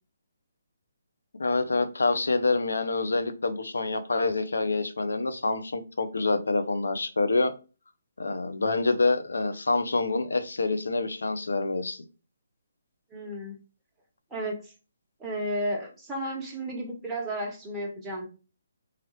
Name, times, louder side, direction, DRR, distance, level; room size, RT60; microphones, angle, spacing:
voice 1, 1.4-7.5 8.2-12.0, left 3 dB, 80° left, 0.5 m, -26 dB
voice 2, 13.1-13.6 14.3-14.6 15.2-18.3, right 1 dB, 10° right, 1.0 m, -33 dB
3.1 x 2.4 x 3.1 m
hypercardioid pair, 145°, 0 cm